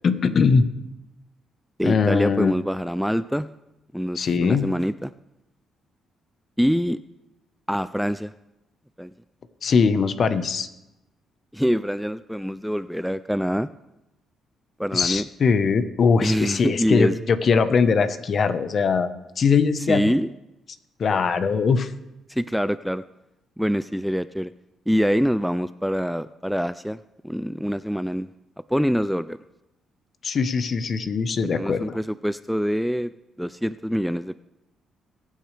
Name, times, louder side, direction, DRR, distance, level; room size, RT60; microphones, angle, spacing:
voice 1, 0.0-0.7 1.8-2.5 4.1-4.7 9.6-10.7 14.9-19.1 19.4-20.2 21.0-21.9 30.2-32.0, left 5 dB, 50° left, 11 dB, 1.0 m, -21 dB
voice 2, 1.8-3.5 3.9-5.1 6.6-7.0 7.7-8.3 9.0-9.1 11.5-13.7 14.8-15.3 16.2-17.2 19.8-20.3 22.3-23.0 23.6-24.5 24.9-28.3 28.7-29.4 31.4-33.1 33.4-34.4, equal, ahead, 14 dB, 0.3 m, -25 dB
21.5 x 9.2 x 3.4 m, 0.92 s
cardioid pair, 90°, 0 cm